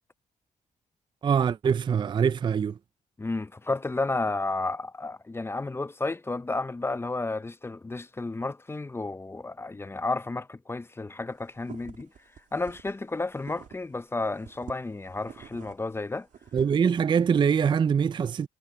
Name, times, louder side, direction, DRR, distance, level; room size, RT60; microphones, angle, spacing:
voice 1, 1.2-2.8 16.5-18.5, right 7 dB, 35° right, 0.4 m, -23 dB
voice 2, 3.2-12.1 12.5-16.3, left 3 dB, 15° left, 0.6 m, -32 dB
sound 1, 11.3-14.0 14.4-17.5, right 8 dB, 60° right, 2.8 m, -47 dB
cardioid pair, 90°, 14 cm